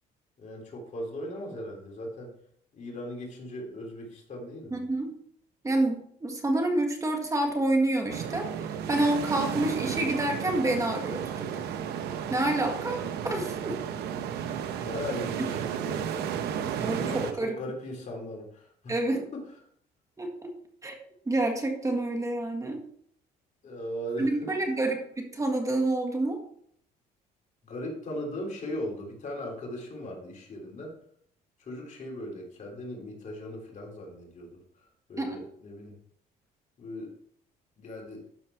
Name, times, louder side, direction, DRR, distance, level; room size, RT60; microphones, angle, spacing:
voice 1, 0.4-2.3 2.7-4.8 13.8-13.9 14.2-14.3 14.8-16.3 16.9-19.6 23.6-24.5 27.6-30.9 31.6-36.0 36.8-37.1 37.8-38.2, left 1 dB, 45° left, -1 dB, 3.3 m, -38 dB
voice 2, 4.7-5.2 5.6-8.5 8.9-11.5 12.3-13.8 15.4-15.5 16.8-17.6 18.9-19.2 20.2-20.5 20.8-21.0 21.3-22.8 24.2-26.4 35.2-35.4, right 2 dB, 20° right, 3 dB, 1.7 m, -28 dB
sound 1, 8.1-17.3, right 8 dB, 75° right, 1.0 m, -33 dB
12.5 x 4.5 x 4.5 m, 0.66 s
cardioid pair, 110°, 17 cm